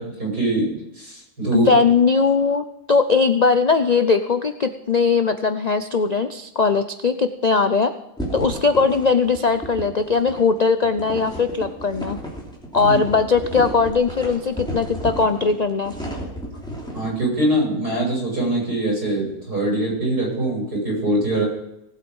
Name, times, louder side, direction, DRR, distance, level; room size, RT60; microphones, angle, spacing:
voice 1, 0.0-1.7 12.8-13.0 16.9-21.5, right 1 dB, 80° right, -3 dB, 7.5 m, -23 dB
voice 2, 1.5-7.9 8.3-12.2 12.7-15.9, left 4 dB, 85° left, 9 dB, 0.3 m, -19 dB
sound 1, 8.2-17.1, right 1 dB, 5° left, 3.0 m, -33 dB
18.5 x 8.4 x 5.4 m, 0.86 s
omnidirectional pair, 1.6 m